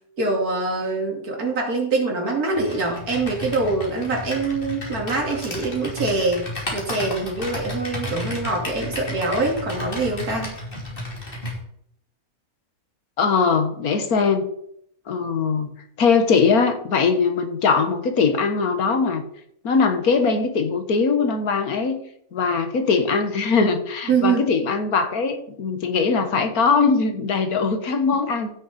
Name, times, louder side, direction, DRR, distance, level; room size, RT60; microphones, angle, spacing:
voice 1, 0.2-10.5 24.1-24.5, right 3 dB, 80° right, 0 dB, 3.1 m, -24 dB
Computer keyboard, 2.5-11.6, left 1 dB, 35° left, 3.2 m, -32 dB
voice 2, 13.2-14.5 15.1-15.7 16.0-19.2 19.6-22.0 22.3-28.5, left 5 dB, 80° left, 7 dB, 1.8 m, -21 dB
15.0 x 6.7 x 4.2 m, 0.71 s
omnidirectional pair, 1.5 m